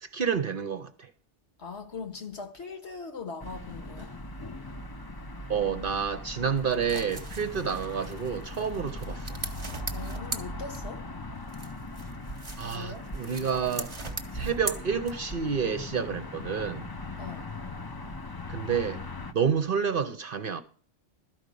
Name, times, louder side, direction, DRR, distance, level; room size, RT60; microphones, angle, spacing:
voice 1, 0.0-1.1 5.5-9.4 12.6-13.9 14.3-16.9 18.5-19.0 19.3-20.6, right 6 dB, 50° right, 0.8 m, -29 dB
voice 2, 1.6-4.1 9.9-11.1 12.7-13.1 17.2-17.5, left 4 dB, 60° left, 1.8 m, -40 dB
sound 1, 3.4-19.3, left 2 dB, 25° left, 0.6 m, -39 dB
sound 2, 6.6-11.1 11.5-15.5, right 3 dB, 25° right, 1.1 m, -40 dB
12.5 x 5.2 x 8.4 m
omnidirectional pair, 1.3 m